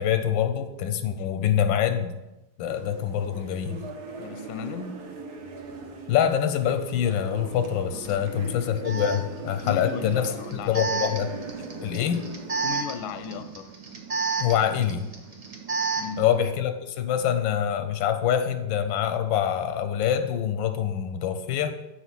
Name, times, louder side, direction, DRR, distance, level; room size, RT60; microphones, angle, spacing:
voice 1, 0.0-2.1 2.6-3.8 6.1-10.3 10.7-12.3 14.4-15.1 16.2-21.7, left 9 dB, 85° left, 8 dB, 1.3 m, -25 dB
sound 1, 2.7-12.7, right 4 dB, 60° right, 1.3 m, -41 dB
voice 2, 4.2-5.0 8.0-8.3 9.6-11.0 12.6-13.7 16.0-16.3, left 6 dB, 70° left, 10 dB, 1.0 m, -36 dB
Alarm, 8.0-8.1 8.8-16.2, right 4 dB, 40° right, 0.5 m, -32 dB
7.0 x 4.4 x 5.9 m, 0.97 s
omnidirectional pair, 2.1 m